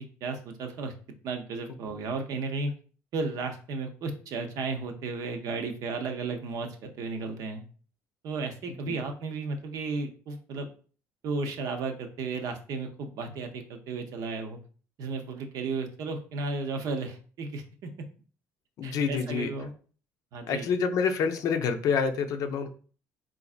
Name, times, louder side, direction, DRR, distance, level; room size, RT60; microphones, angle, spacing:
voice 1, 0.2-0.9 1.2-2.7 3.1-7.6 8.2-10.7 11.2-14.6 15.0-17.9 18.8-19.7 20.3-20.7, right 4 dB, 65° right, 5 dB, 0.6 m, -34 dB
voice 2, 18.8-19.5 20.5-22.7, left 6 dB, 65° left, 7 dB, 0.5 m, -27 dB
3.9 x 2.5 x 2.4 m, 0.40 s
supercardioid pair, 80°, 6 cm